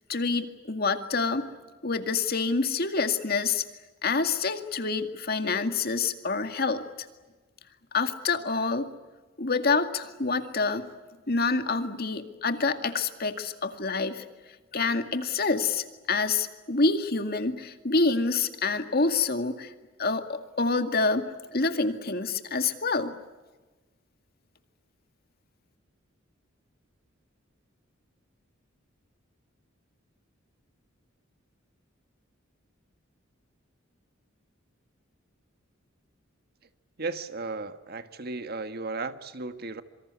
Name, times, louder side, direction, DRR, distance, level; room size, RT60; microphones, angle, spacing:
voice 1, 0.1-1.5 1.8-3.6 4.0-6.8 7.9-8.9 9.4-10.9 11.3-14.2 14.7-19.7 20.0-23.2, left 4 dB, 50° left, 8 dB, 2.1 m, -27 dB
voice 2, 37.0-39.8, right 3 dB, 50° right, 10 dB, 1.5 m, -35 dB
27.0 x 24.5 x 8.4 m, 1.2 s
head